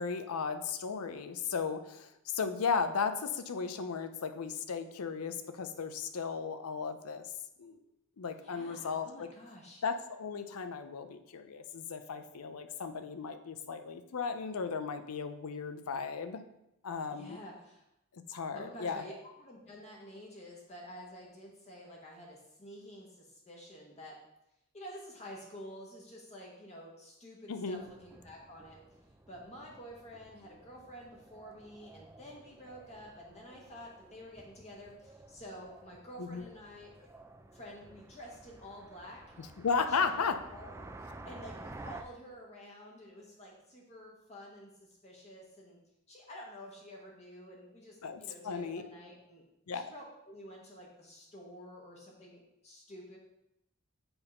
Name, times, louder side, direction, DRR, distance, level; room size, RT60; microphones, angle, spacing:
voice 1, 0.0-7.3 7.6-7.8 8.2-9.3 9.8-16.4 16.8-17.4 18.3-19.0 27.5-27.8 36.2-36.5 39.4-40.4 48.0-48.8 49.7-49.9, left 5 dB, 75° left, 9 dB, 0.5 m, -35 dB
voice 2, 8.4-9.8 17.1-17.8 18.5-24.2 24.7-28.8 29.3-37.1 37.5-39.2 39.9-40.2 40.5-40.8 41.2-45.8 46.1-49.5 49.7-53.2, equal, 30° left, -2 dB, 1.0 m, -50 dB
sound 1, 27.8-42.0, right 2 dB, 10° right, 0.4 m, -53 dB
7.1 x 3.5 x 5.4 m, 0.85 s
head